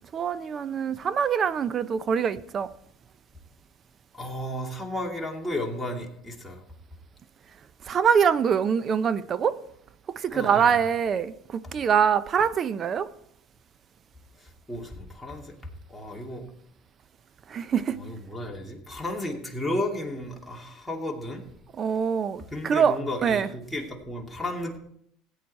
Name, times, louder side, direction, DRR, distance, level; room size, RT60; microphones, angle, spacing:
voice 1, 0.1-2.7 7.9-9.6 10.2-13.1 17.5-18.0 21.8-23.0 23.2-23.5, right 7 dB, 40° right, 0.7 m, -24 dB
voice 2, 4.1-6.6 10.3-10.8 11.6-11.7 14.4-15.5 15.9-16.4 17.9-21.4 22.5-24.8, left 1 dB, 5° left, 2.6 m, -33 dB
16.0 x 9.2 x 4.2 m
supercardioid pair, 105°, 0 cm